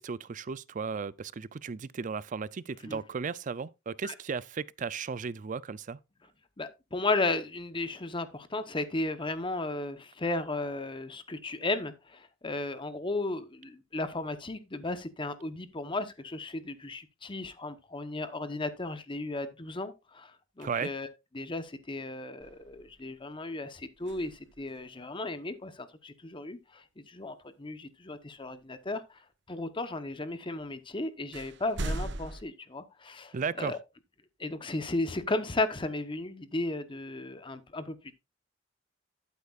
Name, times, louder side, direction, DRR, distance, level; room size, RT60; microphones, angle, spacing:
voice 1, 0.0-6.0 20.6-20.9 33.3-33.8, right 5 dB, 40° right, 0.4 m, -35 dB
voice 2, 6.6-21.1 21.3-29.2 29.5-33.8 34.4-38.1, left 2 dB, 25° left, 0.9 m, -35 dB
sound 1, 22.4-23.2 23.9-24.9 28.4-28.5 30.6-30.7 31.3-32.4, right 1 dB, 65° right, 1.0 m, -38 dB
12.5 x 8.4 x 2.4 m
head